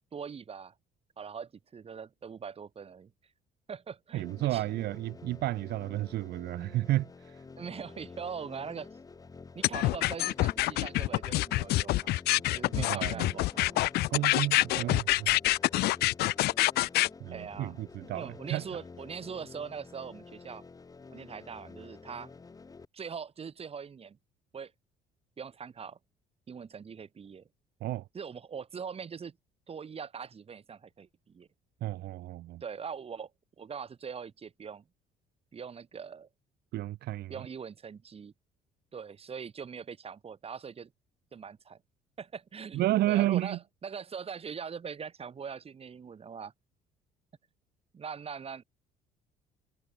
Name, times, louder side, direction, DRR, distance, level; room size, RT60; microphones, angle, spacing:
voice 1, 0.1-0.7 1.2-3.1 3.7-4.6 7.6-9.0 9.5-12.1 12.5-13.9 14.7-15.0 17.3-17.8 18.1-20.6 21.1-22.3 22.9-24.2 24.5-24.7 25.4-26.0 26.5-27.5 28.1-29.4 29.7-31.5 32.6-33.3 33.6-34.8 35.5-36.3 37.3-38.3 38.9-40.9 41.3-41.8 42.2-46.5 47.9-48.6, right 6 dB, 35° right, 3.9 m, -42 dB
voice 2, 4.1-7.4 12.8-13.3 14.1-15.4 17.2-18.8 27.8-28.1 31.8-32.6 36.7-37.4 42.7-43.6, right 15 dB, 75° right, 2.0 m, -31 dB
sound 1, 4.2-22.8, left 4 dB, 20° left, 1.4 m, -50 dB
sound 2, 9.6-17.1, left 18 dB, 75° left, 0.4 m, -26 dB
cardioid pair, 110°, 17 cm